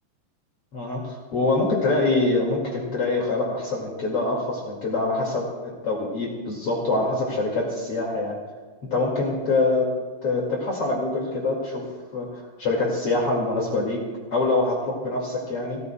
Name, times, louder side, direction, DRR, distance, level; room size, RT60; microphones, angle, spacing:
voice 1, 0.7-8.4 8.9-9.9 10.2-11.9 12.1-15.8, left 2 dB, 40° left, -2 dB, 2.5 m, -25 dB
30.0 x 14.0 x 2.3 m, 1.4 s
omnidirectional pair, 5.0 m